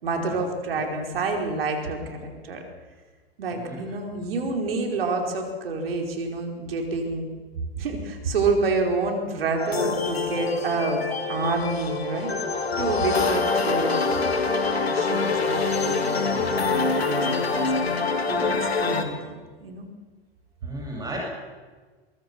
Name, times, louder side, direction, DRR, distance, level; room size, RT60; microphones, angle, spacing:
voice 1, 0.0-2.6 3.4-7.3 7.8-12.3 12.7-14.0 14.7-17.9 18.3-19.3 19.6-19.9, right 3 dB, 70° right, 3 dB, 4.9 m, -28 dB
voice 2, 3.5-3.9 20.6-21.2, right 2 dB, 10° right, -2 dB, 7.1 m, -35 dB
sound 1, 9.6-19.0, left 4 dB, 85° left, 2.3 m, -25 dB
23.0 x 23.0 x 6.2 m, 1.4 s
figure-of-eight pair, 90°, 30 cm